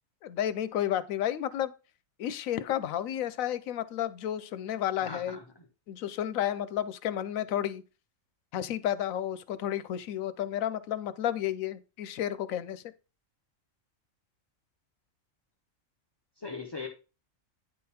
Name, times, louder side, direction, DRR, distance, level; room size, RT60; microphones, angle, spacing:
voice 1, 0.2-1.7 2.2-5.4 5.9-7.8 8.5-12.8, left 11 dB, 80° left, 1.0 m, -31 dB
voice 2, 5.0-5.7 16.4-16.9, left 4 dB, 25° left, 0.6 m, -40 dB
9.5 x 3.8 x 4.2 m
omnidirectional pair, 1.4 m